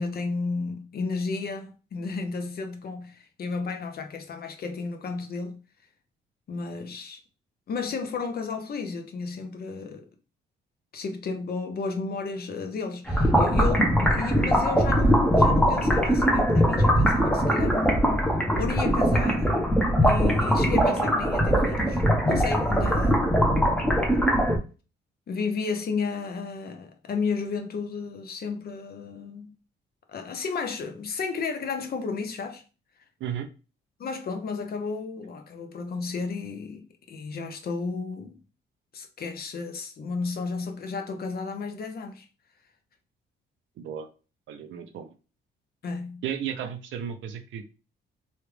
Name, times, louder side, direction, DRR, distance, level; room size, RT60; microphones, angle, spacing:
voice 1, 0.0-5.6 6.5-7.2 7.7-10.1 10.9-18.3 18.6-19.5 20.0-23.5 25.3-29.5 30.1-32.6 34.0-38.4 38.9-42.3 45.8-46.2, left 4 dB, 50° left, 0.7 m, -33 dB
sound 1, 13.1-24.6, equal, 5° left, 0.7 m, -21 dB
voice 2, 43.8-44.1 44.5-45.1 46.2-47.7, right 9 dB, 75° right, 0.6 m, -34 dB
3.1 x 2.4 x 3.3 m
cardioid pair, 90°, 20 cm